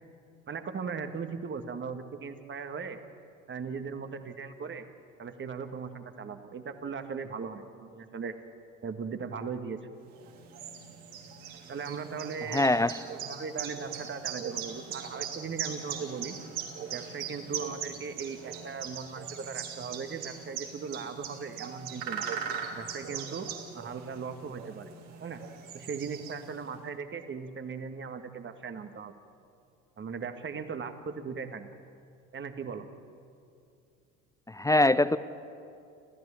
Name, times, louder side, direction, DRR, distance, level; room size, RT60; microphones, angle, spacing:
voice 1, 0.5-3.0 3.5-4.9 5.2-8.4 8.8-9.8 11.7-12.8 13.2-16.4 16.9-22.3 22.7-23.5 23.7-24.9 25.2-25.4 25.7-29.1 30.0-31.7 32.3-32.9, right 5 dB, 30° right, 8 dB, 1.9 m, -38 dB
sound 1, 10.1-26.7, right 7 dB, 60° right, 3.3 m, -40 dB
voice 2, 12.5-12.9 34.5-35.2, left 2 dB, 10° left, 15 dB, 0.6 m, -22 dB
27.5 x 15.0 x 8.6 m, 2.5 s
hypercardioid pair, 70°, 40 cm